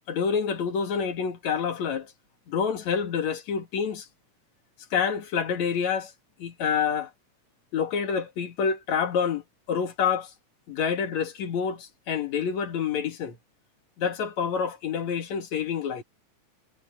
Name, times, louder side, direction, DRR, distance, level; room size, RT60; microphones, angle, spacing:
voice 1, 0.1-2.1 2.5-4.1 4.9-6.1 6.4-7.1 7.7-9.4 9.7-10.3 10.7-13.4 14.0-16.0, left 6 dB, 70° left, 3.1 m, -27 dB
omnidirectional pair, 3.3 m